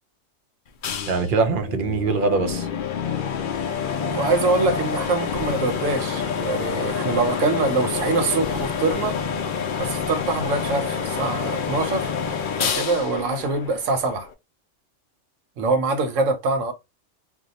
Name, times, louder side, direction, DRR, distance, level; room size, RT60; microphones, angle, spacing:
sound 1, 0.8-14.3, left 6 dB, 55° left, 0.6 m, -27 dB
voice 1, 1.1-2.7, right 4 dB, 55° right, 0.6 m, -22 dB
voice 2, 4.0-9.2 9.8-12.1 12.6-14.3 15.6-16.7, right 3 dB, 85° right, 1.1 m, -24 dB
2.7 x 2.2 x 3.9 m
omnidirectional pair, 1.3 m